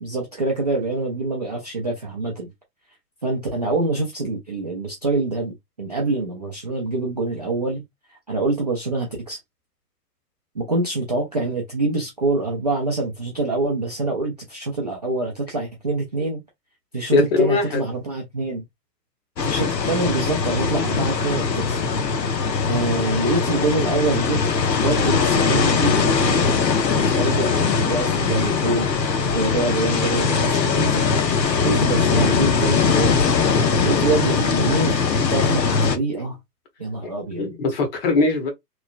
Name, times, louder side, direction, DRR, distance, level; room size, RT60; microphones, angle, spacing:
voice 1, 0.0-2.5 3.2-7.8 8.3-9.4 10.5-16.4 16.9-18.6 19.4-21.8 22.6-24.4 24.7-26.6 26.9-31.1 31.6-33.4 33.8-36.4 36.8-37.5, right 2 dB, 30° right, 0.4 m, -25 dB
voice 2, 17.1-17.8 37.4-38.5, left 3 dB, 35° left, 0.9 m, -20 dB
sound 1, 19.4-36.0, left 5 dB, 85° left, 0.7 m, -21 dB
3.0 x 2.1 x 2.4 m
figure-of-eight pair, 120°, 49 cm